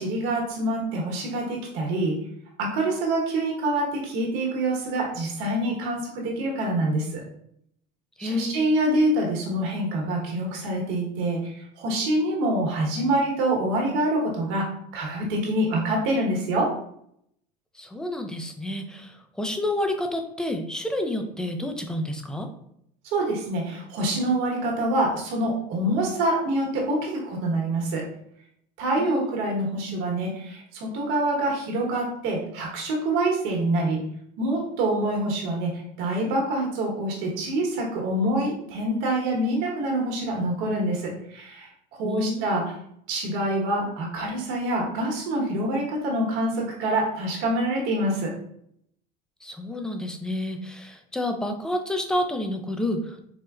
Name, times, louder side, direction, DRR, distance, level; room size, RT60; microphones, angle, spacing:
voice 1, 0.0-2.2 2.6-7.2 8.2-16.7 23.1-28.1 28.8-34.0 34.4-41.7 42.0-42.7 43.1-48.3, right 1 dB, 70° right, -1 dB, 1.1 m, -26 dB
voice 2, 8.2-8.7 17.7-22.5 29.0-29.3 42.0-42.6 49.4-53.2, left 1 dB, 5° left, 5 dB, 0.3 m, -30 dB
4.4 x 2.1 x 2.3 m, 0.71 s
supercardioid pair, 115°, 21 cm